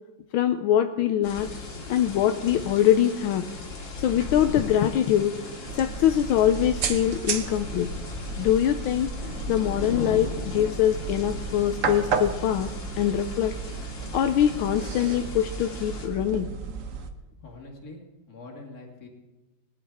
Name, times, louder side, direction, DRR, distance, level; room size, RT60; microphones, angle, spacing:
voice 1, 0.3-1.5 1.9-3.5 4.0-5.3 5.7-7.9 8.4-9.1 9.5-12.7 13.0-13.5 14.1-16.5, left 10 dB, 80° left, 8 dB, 1.4 m, -23 dB
sound 1, 1.2-16.1, left 2 dB, 60° left, 2.7 m, -37 dB
sound 2, 5.6-17.1, right 6 dB, 50° right, 1.0 m, -34 dB
voice 2, 17.4-18.0 18.3-19.1, left 2 dB, 45° left, 0 dB, 2.5 m, -44 dB
20.5 x 11.0 x 3.5 m, 1.1 s
omnidirectional pair, 2.3 m